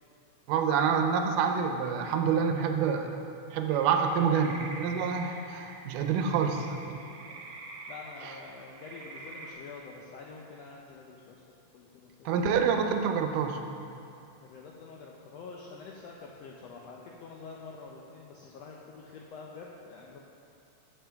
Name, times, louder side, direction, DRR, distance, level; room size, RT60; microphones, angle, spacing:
voice 1, 0.5-3.1 3.5-7.0 8.2-8.3 12.3-13.6, right 6 dB, 85° right, 5 dB, 2.2 m, -27 dB
sound 1, 3.7-9.5, right 3 dB, 60° right, 1.5 m, -46 dB
voice 2, 6.8-7.4 7.9-11.4 11.7-12.3 14.4-20.2, left 4 dB, 80° left, -2 dB, 1.5 m, -47 dB
13.0 x 7.5 x 3.5 m, 2.6 s
omnidirectional pair, 3.7 m